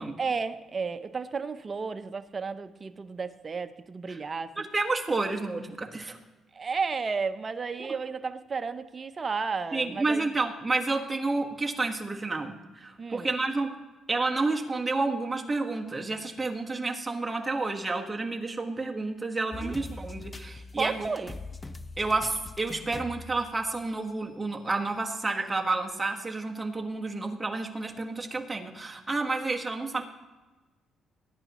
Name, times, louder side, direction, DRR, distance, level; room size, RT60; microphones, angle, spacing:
voice 1, 0.2-4.7 6.5-10.3 13.0-13.3 19.5-19.7 20.8-21.3, right 5 dB, 35° right, 10 dB, 0.7 m, -33 dB
voice 2, 4.7-6.2 7.8-7.9 9.7-13.8 14.1-21.1 22.0-30.0, right 3 dB, 20° right, 2 dB, 1.4 m, -30 dB
sound 1, 19.5-24.2 24.7-24.8 25.7-25.8, left 3 dB, 20° left, 0.7 m, -42 dB
20.0 x 10.0 x 3.0 m, 1.2 s
cardioid pair, 90°, 0 cm